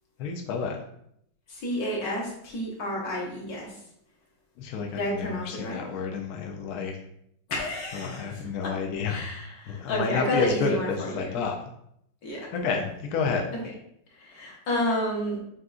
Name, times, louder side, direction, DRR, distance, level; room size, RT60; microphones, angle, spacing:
voice 1, 0.2-0.8 4.6-7.0 7.9-9.2 9.7-11.6 12.5-13.4, left 5 dB, 75° left, 2 dB, 0.8 m, -30 dB
voice 2, 1.5-3.7 4.9-5.8 7.5-8.3 8.6-8.7 9.0-11.4 12.2-12.4 14.2-15.4, left 1 dB, 55° left, -3 dB, 1.5 m, -30 dB
7.2 x 2.5 x 2.4 m, 0.74 s
omnidirectional pair, 2.1 m